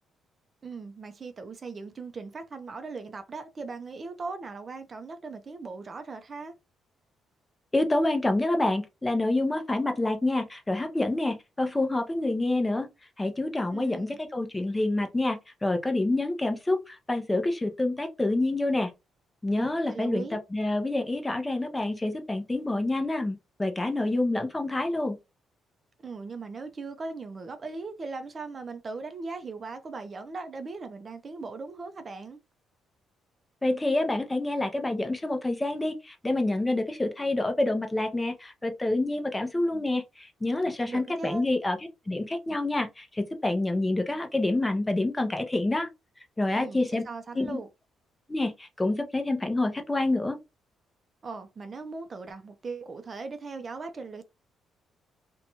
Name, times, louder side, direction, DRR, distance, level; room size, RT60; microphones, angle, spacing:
voice 1, 0.6-6.5 13.7-14.2 19.6-20.4 26.0-32.4 40.8-41.4 46.6-47.7 51.2-54.2, right 4 dB, 40° right, 0.4 m, -39 dB
voice 2, 7.7-12.9 13.2-18.9 19.4-25.2 33.6-41.8 42.1-45.9 46.4-47.0 47.3-47.6 48.3-50.4, left 2 dB, 15° left, 0.6 m, -27 dB
2.6 x 2.2 x 2.8 m
cardioid pair, 90°, 0 cm